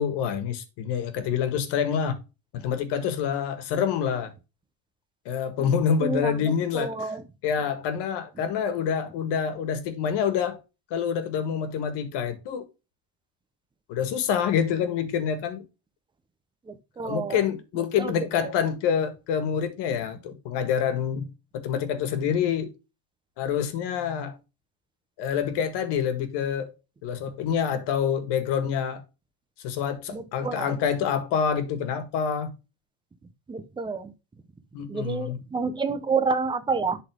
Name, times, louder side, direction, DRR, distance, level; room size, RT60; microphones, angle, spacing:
voice 1, 0.0-2.2 2.5-4.3 5.2-7.2 7.4-10.6 10.9-12.6 13.9-15.6 17.0-22.7 23.4-24.4 25.2-26.7 27.0-29.0 29.6-32.6 34.7-35.4, left 7 dB, 55° left, 1.8 m, -27 dB
voice 2, 6.0-6.4 6.7-7.2 16.7-17.4 18.0-18.1 18.4-18.6 30.1-30.7 33.5-34.1 34.9-37.0, right 4 dB, 10° right, 0.6 m, -29 dB
11.0 x 4.1 x 3.6 m
cardioid pair, 170°, 49 cm